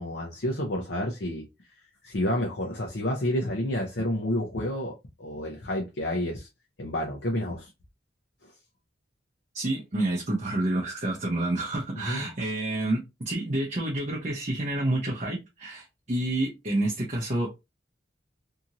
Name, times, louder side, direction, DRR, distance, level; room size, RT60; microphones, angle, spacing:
voice 1, 0.0-1.5 2.0-6.5 6.8-7.7 12.1-12.3, left 1 dB, 60° left, 0.6 m, -30 dB
voice 2, 9.5-17.6, right 1 dB, 40° right, 0.7 m, -29 dB
2.8 x 2.5 x 2.8 m
head